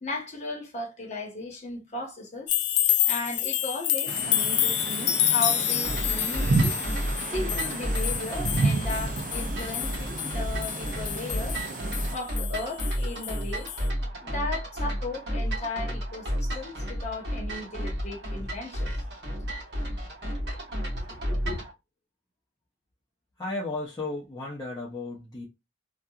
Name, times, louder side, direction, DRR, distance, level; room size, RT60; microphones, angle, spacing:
voice 1, 0.0-2.5 3.0-6.7 7.3-11.6 12.1-13.7 14.2-19.0 21.1-21.6, left 2 dB, 40° left, 1.0 m, -36 dB
sound 1, 2.5-13.4 13.7-13.8, left 12 dB, 85° left, 0.3 m, -28 dB
sound 2, 4.1-12.1, right 3 dB, 50° right, 0.3 m, -31 dB
sound 3, 5.8-21.7, equal, 70° right, 1.0 m, -32 dB
voice 2, 23.4-25.4, left 2 dB, 20° left, 0.6 m, -34 dB
2.7 x 2.3 x 2.3 m
head